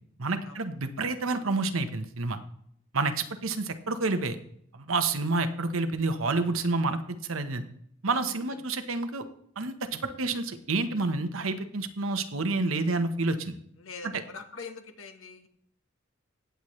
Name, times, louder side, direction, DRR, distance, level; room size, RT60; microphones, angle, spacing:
voice 1, 0.2-2.4 2.9-4.4 4.7-7.6 8.0-9.2 9.6-13.5, right 3 dB, 75° right, 9 dB, 1.0 m, -29 dB
voice 2, 13.8-15.5, left 4 dB, 70° left, 7 dB, 1.3 m, -43 dB
17.0 x 8.1 x 3.2 m, 0.69 s
head